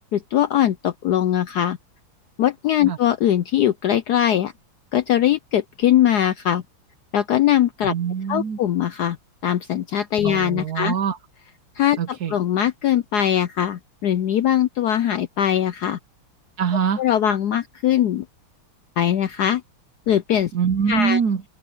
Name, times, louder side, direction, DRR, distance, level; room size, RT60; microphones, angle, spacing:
voice 1, 0.1-1.8 2.4-4.5 4.9-6.6 7.1-7.9 8.3-9.2 9.4-10.9 11.8-16.0 17.0-18.2 19.0-19.6 20.1-20.5 20.9-21.2, left 11 dB, 75° left, 0.9 m, -21 dB
voice 2, 7.9-8.6 10.2-11.2 12.0-12.3 16.6-17.0 20.5-21.4, right 7 dB, 60° right, 1.2 m, -23 dB
omnidirectional pair, 2.3 m